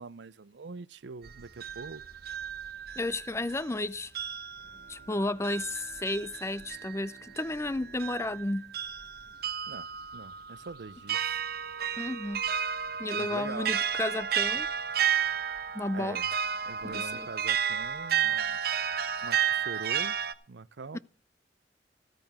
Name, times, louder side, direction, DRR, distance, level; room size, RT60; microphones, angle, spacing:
voice 1, 0.0-2.0 9.7-11.4 13.1-13.7 15.9-16.3 16.7-18.6 19.2-20.2 20.5-21.0, right 4 dB, 75° right, 0.6 m, -43 dB
sound 1, 1.2-3.8 4.1-20.3, right 8 dB, 60° right, 0.9 m, -32 dB
voice 2, 3.0-4.1 4.9-8.7 12.0-12.4 13.0-14.7 15.7-16.2 16.8-17.3, left 2 dB, 15° left, 0.5 m, -32 dB
Bowed string instrument, 4.5-10.1, right 3 dB, 30° left, 5.5 m, -60 dB
14.0 x 13.5 x 3.6 m
head